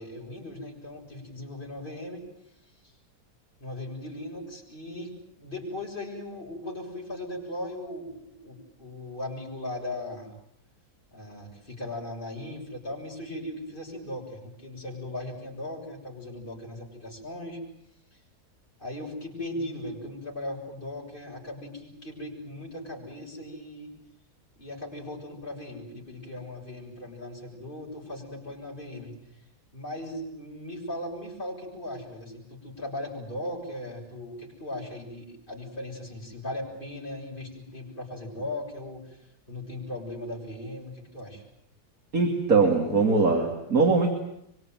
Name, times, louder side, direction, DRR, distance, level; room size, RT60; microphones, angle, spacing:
voice 1, 0.0-2.2 3.6-10.3 11.1-17.6 18.1-18.2 18.8-23.9 24.6-29.1 29.7-39.2 39.5-41.4, left 1 dB, 30° left, -2 dB, 7.5 m, -38 dB
voice 2, 42.1-44.1, right 4 dB, 55° right, 2 dB, 3.2 m, -21 dB
25.0 x 24.5 x 9.3 m, 0.75 s
omnidirectional pair, 1.8 m